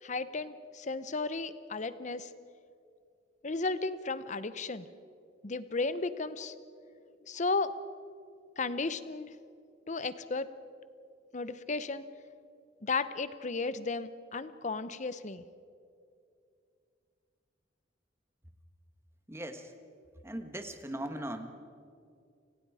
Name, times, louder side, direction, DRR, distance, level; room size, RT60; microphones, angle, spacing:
voice 1, 0.0-2.3 3.4-4.9 5.4-6.5 7.3-7.7 8.6-9.3 9.9-10.5 11.3-12.0 12.8-15.4, left 3 dB, 40° left, 14 dB, 0.8 m, -34 dB
voice 2, 19.3-19.7 20.2-21.5, right 1 dB, 15° right, 7 dB, 1.4 m, -39 dB
30.0 x 18.0 x 4.9 m, 2.4 s
head